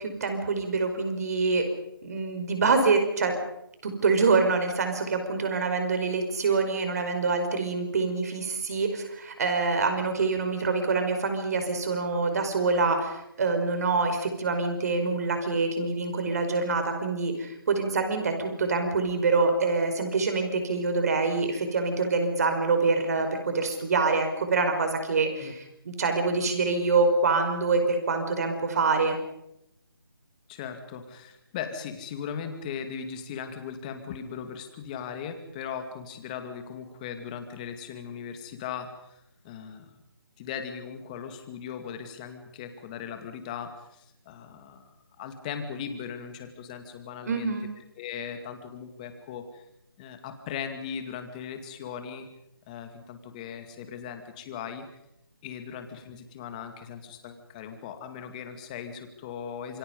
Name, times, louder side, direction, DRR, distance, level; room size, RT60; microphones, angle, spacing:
voice 1, 0.0-1.7 2.0-3.3 3.8-29.2 47.3-47.7, right 4 dB, 40° right, 6 dB, 5.1 m, -26 dB
voice 2, 30.5-39.2 39.4-40.0 40.4-47.5 48.0-49.6 50.0-52.3 52.7-54.8 55.4-59.8, left 7 dB, 20° left, 7 dB, 2.3 m, -38 dB
28.0 x 24.5 x 5.4 m, 0.83 s
figure-of-eight pair, 165°, 13 cm